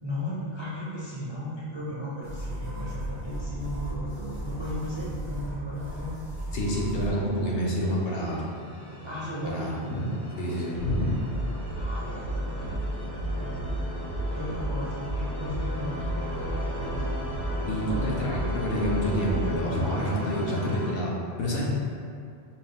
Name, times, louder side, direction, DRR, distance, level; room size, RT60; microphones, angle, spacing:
voice 1, 0.0-6.1 9.0-10.1 11.7-13.8 14.3-17.1 19.6-20.2, left 1 dB, 35° right, -8 dB, 0.4 m, -36 dB
sound 1, 2.2-7.1, right 1 dB, 85° left, 1.5 m, -35 dB
voice 2, 6.5-8.4 9.4-10.1 10.4-11.2 17.7-21.7, equal, 65° left, -3 dB, 0.8 m, -28 dB
sound 2, 6.6-20.9, left 1 dB, 30° left, 0.6 m, -37 dB
sound 3, 10.8-19.7, right 1 dB, 90° right, 0.9 m, -32 dB
4.2 x 2.3 x 3.5 m, 2.3 s
omnidirectional pair, 1.1 m